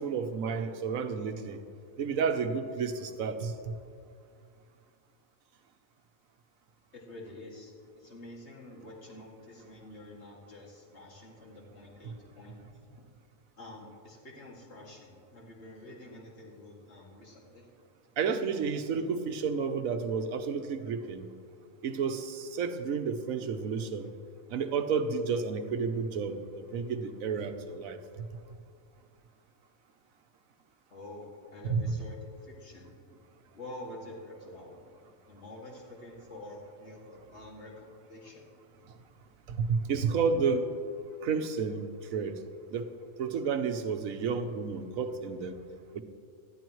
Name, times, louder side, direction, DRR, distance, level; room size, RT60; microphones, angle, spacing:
voice 1, 0.0-1.6 2.0-3.7 18.2-21.3 21.8-24.1 24.5-28.0 31.7-31.8 39.5-40.7 41.2-42.4 42.7-42.9 43.2-45.6 45.9-46.0, right 5 dB, 85° right, 7 dB, 1.3 m, -31 dB
voice 2, 6.9-13.1 13.6-17.7 30.9-32.2 32.4-33.0 33.5-34.9 35.3-38.5, left 1 dB, 55° left, -3 dB, 2.5 m, -48 dB
19.5 x 13.0 x 3.1 m, 2.3 s
omnidirectional pair, 1.4 m